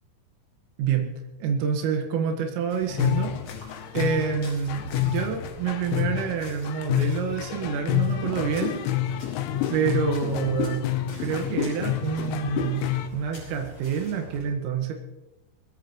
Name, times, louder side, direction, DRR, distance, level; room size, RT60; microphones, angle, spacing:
voice 1, 0.8-1.1 1.4-3.3 3.9-8.8 9.7-10.8 11.2-12.9 13.1-14.9, right 7 dB, 90° right, 3 dB, 4.2 m, -27 dB
sound 1, 2.7-14.4, left 2 dB, 30° left, 6.1 m, -46 dB
sound 2, 2.9-13.1, left 11 dB, 80° left, 3.3 m, -28 dB
20.5 x 16.5 x 3.1 m, 0.96 s
omnidirectional pair, 5.8 m